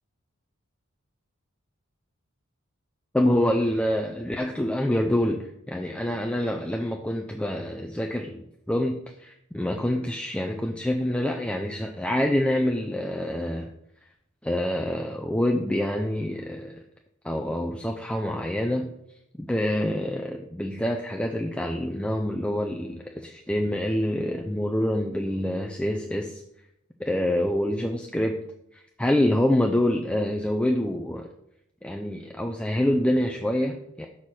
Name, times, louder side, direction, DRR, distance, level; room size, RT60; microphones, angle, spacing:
voice 1, 3.1-13.7 14.4-16.8 17.2-18.9 19.4-26.4 27.0-28.4 28.7-31.3 31.8-34.1, left 1 dB, 5° left, 2 dB, 0.3 m, -26 dB
6.4 x 6.2 x 4.2 m, 0.80 s
head